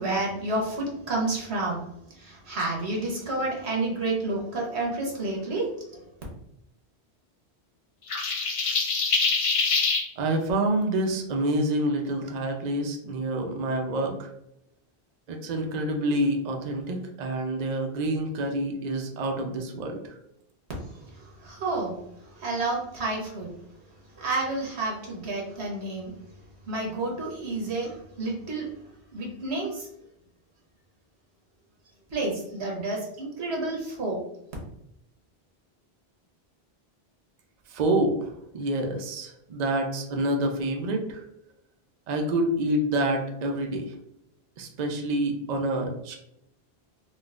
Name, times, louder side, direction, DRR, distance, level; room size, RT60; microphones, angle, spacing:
voice 1, 0.0-1.8 2.2-6.0 21.2-21.9 22.3-23.5 24.2-26.1 26.7-28.7 29.1-29.9 32.1-34.2, right 2 dB, 90° right, -2 dB, 1.3 m, -30 dB
sound 1, 8.1-10.0, left 4 dB, 50° left, 0.4 m, -24 dB
voice 2, 10.2-14.3 15.3-20.2 37.7-41.2 42.1-43.9 44.6-46.2, right 1 dB, 50° right, 3 dB, 0.5 m, -27 dB
3.8 x 2.3 x 2.4 m, 0.78 s
omnidirectional pair, 1.1 m